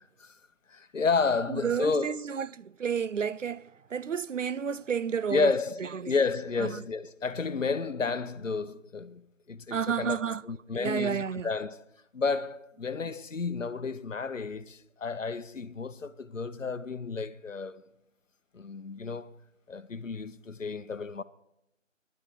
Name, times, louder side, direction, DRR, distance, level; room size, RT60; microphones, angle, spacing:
voice 1, 0.7-2.2 5.3-9.2 9.5-11.8 12.1-17.8 18.5-19.4 19.7-21.2, left 4 dB, 75° left, 0.9 m, -31 dB
voice 2, 1.5-5.5 5.8-6.1 6.6-6.8 9.7-10.4 10.8-11.5, right 7 dB, 75° right, 0.5 m, -31 dB
15.5 x 10.5 x 5.0 m
figure-of-eight pair, 165°, 39 cm